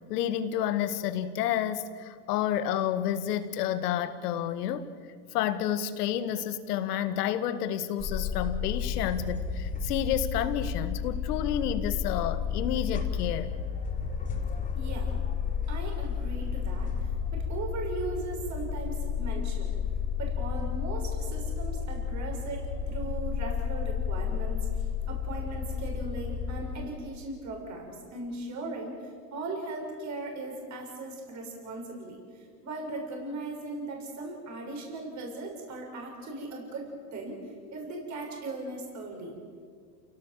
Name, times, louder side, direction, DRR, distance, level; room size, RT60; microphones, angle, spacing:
voice 1, 0.1-4.9 5.3-13.5, left 10 dB, 65° left, 11 dB, 1.9 m, -30 dB
sound 1, 8.0-26.9, left 6 dB, 15° left, 4.2 m, -32 dB
voice 2, 14.7-15.2 15.7-19.8 20.2-29.0 29.3-39.4, right 2 dB, 35° right, 1 dB, 6.3 m, -38 dB
29.0 x 17.0 x 7.6 m, 2.1 s
hypercardioid pair, 110°, 49 cm